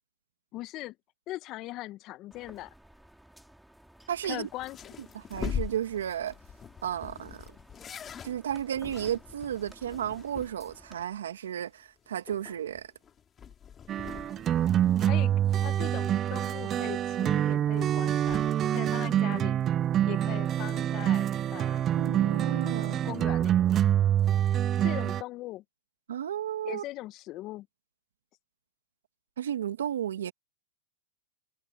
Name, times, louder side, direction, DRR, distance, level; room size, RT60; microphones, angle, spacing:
voice 1, 0.5-1.0 1.3-2.7 4.2-4.9 15.0-15.3 15.6-19.6 20.1-21.9 23.0-23.6 24.8-25.6 26.6-27.7, left 17 dB, 40° left, 1.1 m, -40 dB
sound 1, 2.3-11.0, right 1 dB, ahead, 4.6 m, -56 dB
voice 2, 4.1-4.5 5.1-6.3 6.8-7.4 8.2-12.9 21.9-23.1 26.1-26.8 29.4-30.3, right 10 dB, 80° right, 2.3 m, -33 dB
sound 2, 4.2-10.9 11.1-11.2 11.6-11.7 12.1-15.6 15.9-17.1 17.9-18.5, left 8 dB, 25° left, 3.7 m, -42 dB
sound 3, 13.9-25.2, right 11 dB, 30° right, 0.3 m, -26 dB
hypercardioid pair, 120°, 0 cm